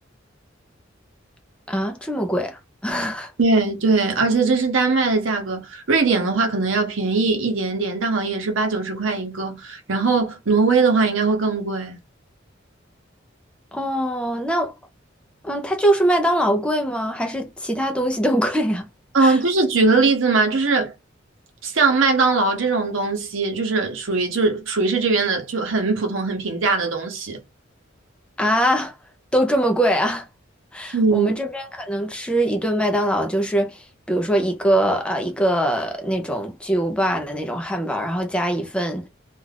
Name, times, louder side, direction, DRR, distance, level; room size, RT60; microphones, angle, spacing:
voice 1, 1.7-3.3 13.7-14.7 15.4-18.9 19.2-19.4 28.4-29.0 29.3-30.3 30.7-39.1, right 1 dB, 5° left, 0.5 m, -22 dB
voice 2, 3.4-12.0 19.1-20.9 21.6-27.4 30.9-31.3, right 3 dB, 85° right, 0.8 m, -20 dB
2.4 x 2.3 x 3.3 m
head